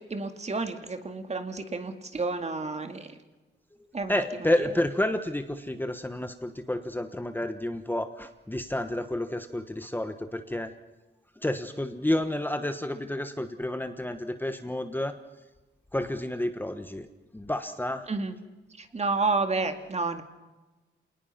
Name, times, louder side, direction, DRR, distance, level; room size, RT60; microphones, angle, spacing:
voice 1, 0.0-3.2 3.9-4.7 18.1-18.3 18.8-20.2, right 3 dB, 35° right, 7 dB, 2.3 m, -30 dB
voice 2, 4.1-10.7 11.4-15.1 15.9-17.1 17.3-18.1, left 1 dB, 10° left, 8 dB, 1.2 m, -30 dB
28.0 x 19.5 x 5.9 m, 1.1 s
wide cardioid pair, 105°, 20 cm